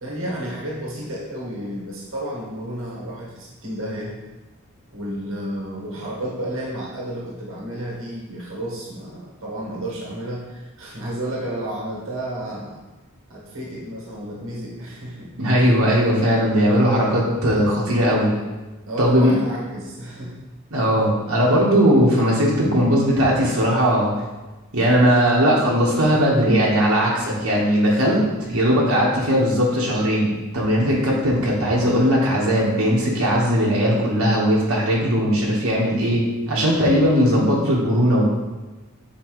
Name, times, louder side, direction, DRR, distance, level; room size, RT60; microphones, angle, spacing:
voice 1, 0.0-4.1 4.9-12.8 13.3-15.3 18.9-20.3, right 1 dB, 65° right, -4 dB, 1.4 m, -31 dB
voice 2, 15.4-18.3 19.0-19.4 20.7-24.1 24.7-28.2 28.5-38.3, equal, 80° right, -5 dB, 1.3 m, -18 dB
6.8 x 4.7 x 3.1 m, 1.2 s
head